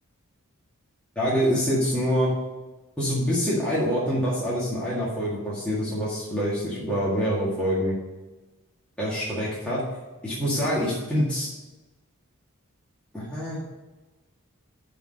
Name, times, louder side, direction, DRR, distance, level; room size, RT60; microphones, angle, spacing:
voice 1, 1.2-2.3 3.0-8.0 9.0-9.8 10.2-11.5 13.1-13.6, equal, 5° left, -8 dB, 1.8 m, -25 dB
6.6 x 5.9 x 6.3 m, 1.2 s
head